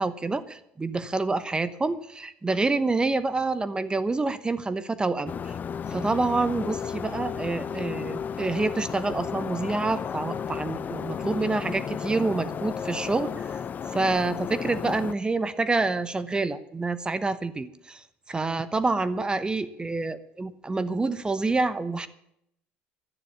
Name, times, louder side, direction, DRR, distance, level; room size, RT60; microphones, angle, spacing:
voice 1, 0.0-5.5 5.9-13.6 13.9-18.0 18.3-22.1, right 3 dB, 20° right, 15 dB, 1.0 m, -27 dB
sound 1, 5.3-15.1, left 7 dB, 40° left, 0.5 m, -33 dB
12.0 x 9.9 x 8.3 m, 0.75 s
supercardioid pair, 80°, 5 cm